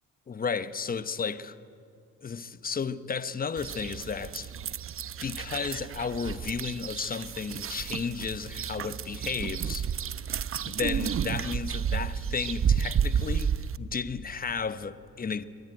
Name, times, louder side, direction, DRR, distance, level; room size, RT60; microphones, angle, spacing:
voice 1, 0.3-1.5 2.2-4.5 5.2-9.9 10.6-15.4, left 5 dB, 30° left, 1.0 m, -33 dB
sound 1, 3.6-13.8, right 7 dB, 45° right, 0.8 m, -31 dB
22.5 x 20.5 x 9.1 m
cardioid pair, 90°, 30 cm